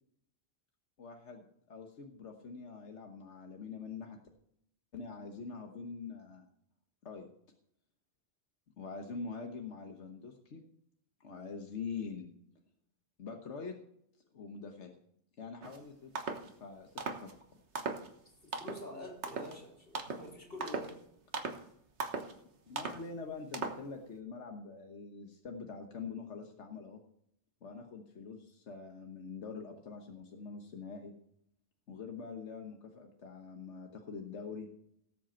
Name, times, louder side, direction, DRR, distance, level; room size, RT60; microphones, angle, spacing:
voice 1, 1.0-4.2 4.9-6.4 7.0-7.3 8.8-10.6 11.2-12.3 13.2-13.7 14.3-14.9 15.4-16.1 16.5-17.3 22.7-27.0 27.6-31.1 31.9-34.7, left 5 dB, 90° left, 3 dB, 1.5 m, -44 dB
sound 1, 15.6-15.8 16.2-16.5 17.0-17.3 17.8-18.1 18.5-18.9 19.2-19.6 19.9-20.3 20.6-21.0 21.3-21.6 22.0-22.3 22.8-23.0 23.5-23.9, right 4 dB, 75° right, 1.6 m, -38 dB
voice 2, 18.6-21.0, equal, 55° left, 0 dB, 3.7 m, -46 dB
18.5 x 7.7 x 4.4 m, 0.74 s
omnidirectional pair, 1.2 m